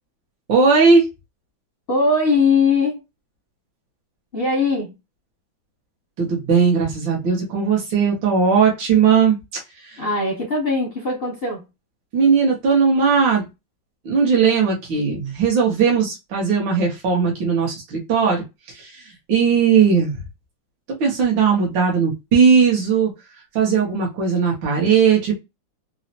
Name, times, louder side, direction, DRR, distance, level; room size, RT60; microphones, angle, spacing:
voice 1, 0.5-1.1 6.2-9.4 9.8-10.0 12.1-13.4 14.0-20.2 21.0-23.1 23.5-25.4, right 6 dB, 70° right, 1.6 m, -18 dB
voice 2, 1.9-3.0 4.3-4.9 10.0-11.6, left 3 dB, 50° left, 0.6 m, -20 dB
3.9 x 2.0 x 2.6 m
omnidirectional pair, 2.1 m